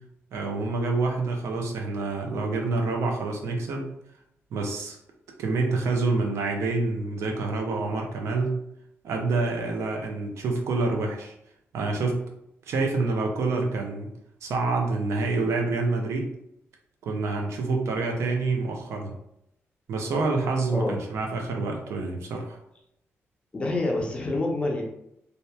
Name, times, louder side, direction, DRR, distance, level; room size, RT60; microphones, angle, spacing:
voice 1, 0.3-3.9 4.5-5.0 5.4-8.6 9.0-11.3 11.7-12.2 12.7-14.1 14.4-16.3 17.1-19.1 19.9-22.6, right 3 dB, 75° right, 2 dB, 0.5 m, -27 dB
voice 2, 23.5-24.8, left 2 dB, 20° left, 0 dB, 0.4 m, -27 dB
2.8 x 2.1 x 2.2 m, 0.78 s
wide cardioid pair, 165°, 5 cm